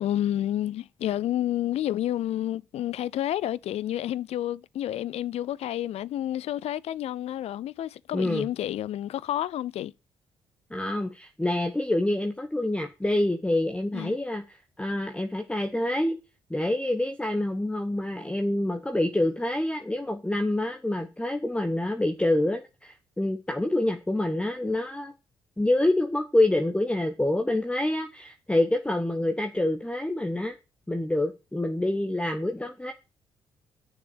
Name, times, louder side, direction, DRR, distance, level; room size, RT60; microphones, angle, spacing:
voice 1, 0.0-9.9 13.9-14.2, left 12 dB, 55° left, 0.5 m, -30 dB
voice 2, 8.1-8.5 10.7-16.2 16.5-25.1 25.6-30.5 30.9-32.9, left 1 dB, 10° left, 1.2 m, -27 dB
7.3 x 6.7 x 7.2 m
figure-of-eight pair, 40°, 13 cm